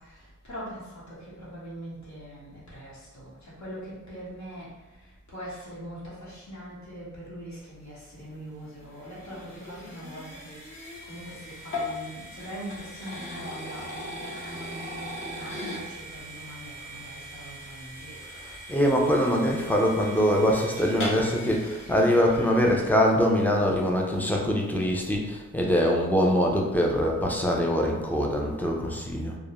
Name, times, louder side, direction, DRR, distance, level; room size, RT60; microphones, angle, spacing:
voice 1, 0.0-18.3, equal, 70° left, -7 dB, 1.0 m, -42 dB
sound 1, 8.2-23.4, left 1 dB, 45° left, 0.9 m, -40 dB
voice 2, 18.4-29.4, equal, 5° left, -1 dB, 0.3 m, -23 dB
2.3 x 2.0 x 2.9 m, 1.1 s
wide cardioid pair, 100°, 29 cm